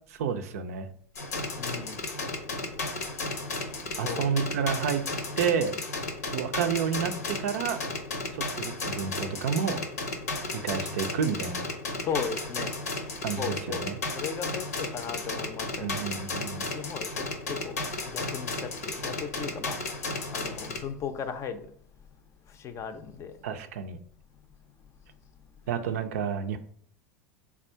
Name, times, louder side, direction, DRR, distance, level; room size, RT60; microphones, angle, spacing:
voice 1, 0.1-0.9 4.0-5.1 5.4-5.7 6.3-7.8 8.3-9.8 10.5-11.6 13.2-14.0 15.8-16.7 23.4-24.0 25.7-26.6, right 7 dB, 65° right, 0.4 m, -30 dB
sound 1, 1.2-20.8, left 3 dB, 80° left, 0.7 m, -34 dB
voice 2, 1.6-2.0 4.0-4.3 12.0-12.7 13.4-13.8 14.1-16.1 16.7-17.8 18.1-19.8 20.3-21.6 22.6-23.3, left 6 dB, 35° left, 0.5 m, -36 dB
3.4 x 2.4 x 4.3 m
figure-of-eight pair, 85°, 8 cm